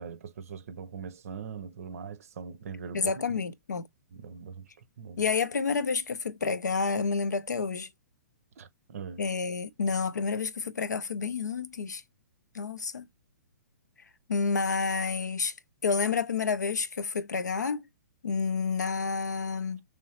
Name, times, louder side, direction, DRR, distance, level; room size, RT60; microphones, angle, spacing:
voice 1, 0.0-3.4 4.1-4.7 5.0-5.2 8.6-9.2, right 6 dB, 55° right, 0.6 m, -41 dB
voice 2, 2.9-3.8 5.2-7.9 9.2-12.0 12.5-13.1 14.3-15.5 15.8-17.8 18.2-19.8, left 5 dB, 80° left, 0.5 m, -29 dB
3.6 x 3.3 x 2.8 m
figure-of-eight pair, 120°, 9 cm